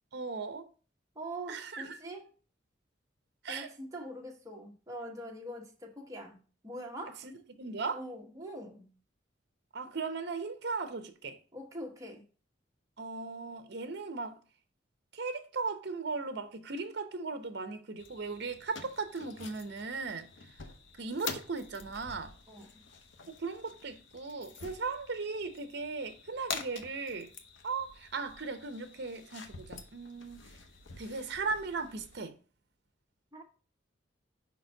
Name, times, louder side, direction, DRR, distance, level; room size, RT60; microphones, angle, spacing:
voice 1, 0.1-0.7 1.5-2.0 3.4-3.7 7.2-8.0 9.7-11.4 13.0-14.4 15.1-20.5 21.0-22.3 23.3-27.3 27.6-30.5 31.0-32.4, right 4 dB, 60° right, 0.7 m, -37 dB
voice 2, 1.1-2.3 3.5-7.2 7.9-8.9 11.5-12.2 22.5-22.7 33.3-33.4, right 1 dB, 15° right, 1.1 m, -43 dB
sound 1, 18.0-32.2, left 5 dB, 75° left, 0.8 m, -47 dB
5.2 x 4.1 x 4.4 m
head